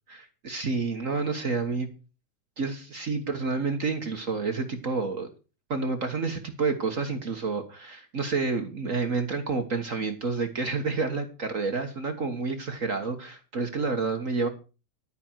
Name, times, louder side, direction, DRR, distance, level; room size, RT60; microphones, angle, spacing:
voice 1, 0.1-1.9 2.6-5.3 5.7-14.5, right 4 dB, 50° right, 6 dB, 0.9 m, -29 dB
12.0 x 9.6 x 4.6 m, 0.32 s
omnidirectional pair, 3.6 m